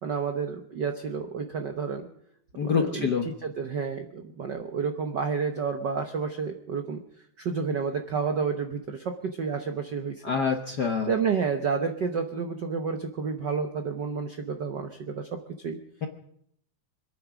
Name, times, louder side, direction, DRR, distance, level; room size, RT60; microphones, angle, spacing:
voice 1, 0.0-2.1 2.6-7.0 7.4-10.2 11.1-15.8, right 5 dB, 70° right, 5 dB, 1.0 m, -30 dB
voice 2, 2.6-3.3 10.2-11.1 16.0-16.1, left 6 dB, 60° left, 3 dB, 1.1 m, -26 dB
26.0 x 9.4 x 6.0 m, 0.70 s
omnidirectional pair, 3.3 m